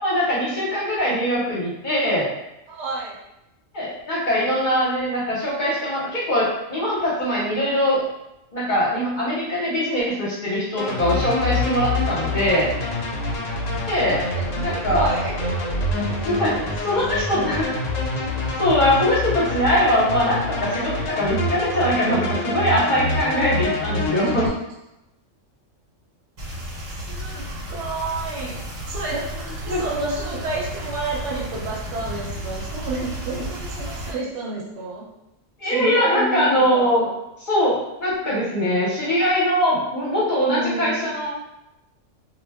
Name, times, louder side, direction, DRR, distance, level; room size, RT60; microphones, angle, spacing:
voice 1, 0.0-2.3 3.7-8.1 8.5-12.7 13.9-14.2 14.6-15.1 16.2-16.5 16.8-17.6 18.6-24.5 29.7-30.1 35.6-37.1 37.4-41.3, equal, 45° left, -6 dB, 0.8 m, -22 dB
voice 2, 2.7-3.2 14.6-16.7 17.3-17.5 27.1-28.6 28.9-35.0 35.6-37.2 40.5-41.1, right 3 dB, 70° right, -3 dB, 0.9 m, -30 dB
sound 1, 10.8-24.5, left 2 dB, 90° left, 1.0 m, -26 dB
sound 2, 26.4-34.1, equal, 85° right, 1.1 m, -33 dB
2.3 x 2.1 x 3.3 m, 0.90 s
omnidirectional pair, 1.3 m